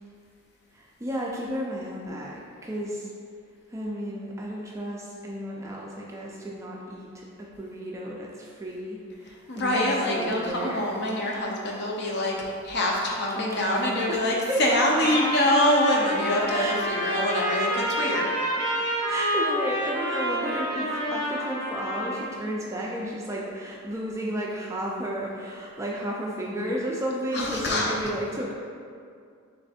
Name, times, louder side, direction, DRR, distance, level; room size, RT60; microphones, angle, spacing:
voice 1, 0.7-3.1 3.7-7.2 7.6-10.9 13.4-14.6 16.5-17.1 18.9-28.5, equal, 15° right, -3 dB, 0.3 m, -33 dB
voice 2, 9.5-18.3 27.3-27.9, left 1 dB, 50° left, -2 dB, 0.6 m, -25 dB
Trumpet, 14.9-22.3, equal, 20° left, 0.8 m, -28 dB
3.4 x 3.3 x 4.1 m, 2.2 s
head